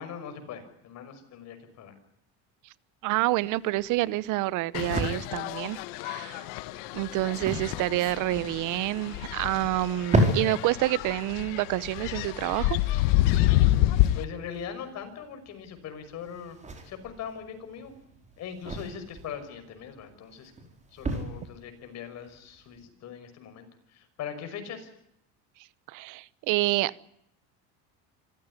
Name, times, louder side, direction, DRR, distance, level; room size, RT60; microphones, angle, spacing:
voice 1, 0.0-1.9 7.0-7.5 14.1-16.6 16.8-17.9 18.4-20.5 20.9-24.9, left 7 dB, 50° left, 5.9 m, -41 dB
voice 2, 3.0-5.8 6.0-6.5 6.9-12.8 25.9-27.1, right 17 dB, 60° right, 1.0 m, -28 dB
sound 1, 3.1-22.9, right 1 dB, 20° right, 4.9 m, -35 dB
sound 2, 4.7-14.2, left 15 dB, 80° left, 1.3 m, -28 dB
26.5 x 15.5 x 9.9 m
cardioid pair, 135°, 35 cm